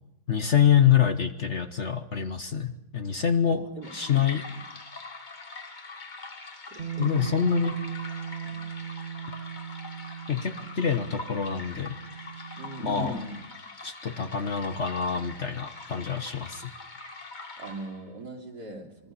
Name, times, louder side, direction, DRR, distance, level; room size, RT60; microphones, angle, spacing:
voice 1, 0.3-3.6 3.9-4.5 7.0-7.8 10.3-12.0 12.8-13.4 13.8-16.7, left 8 dB, 45° left, 9 dB, 1.2 m, -25 dB
voice 2, 3.5-3.9 4.5-4.6 6.7-7.2 8.4-8.6 10.6-10.7 12.5-13.5 17.6-19.1, right 3 dB, 65° right, 2 dB, 3.7 m, -42 dB
sound 1, 3.8-18.1, left 3 dB, 25° left, 1.6 m, -43 dB
Bass guitar, 6.8-13.0, right 8 dB, 40° right, 1.4 m, -38 dB
26.5 x 23.0 x 5.7 m, 0.84 s
omnidirectional pair, 1.9 m